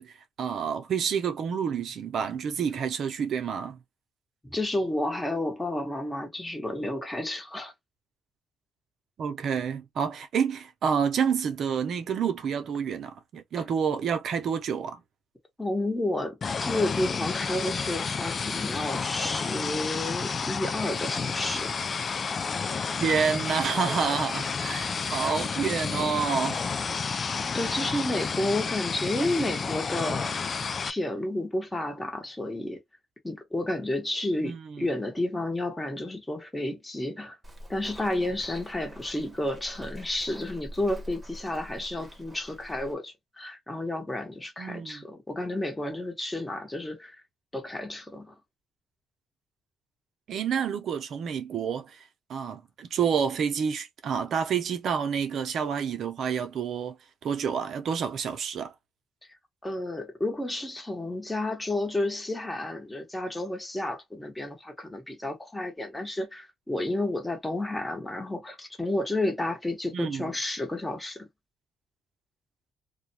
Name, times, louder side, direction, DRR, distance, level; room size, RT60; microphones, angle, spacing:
voice 1, 0.0-3.8 9.2-15.0 23.0-26.7 34.4-34.9 44.6-45.0 50.3-52.0 52.3-57.0 57.2-58.7 69.9-70.3, right 7 dB, 70° right, 0.6 m, -29 dB
voice 2, 4.4-7.7 15.6-21.7 27.5-30.3 30.8-32.8 33.2-37.4 37.7-47.2 47.5-48.4 59.6-71.3, left 1 dB, 15° left, 1.1 m, -31 dB
sound 1, 16.4-30.9, left 5 dB, 45° left, 0.3 m, -31 dB
Walk footsteps, 37.4-42.9, equal, 30° right, 0.9 m, -45 dB
2.3 x 2.2 x 2.7 m
cardioid pair, 75°, 0 cm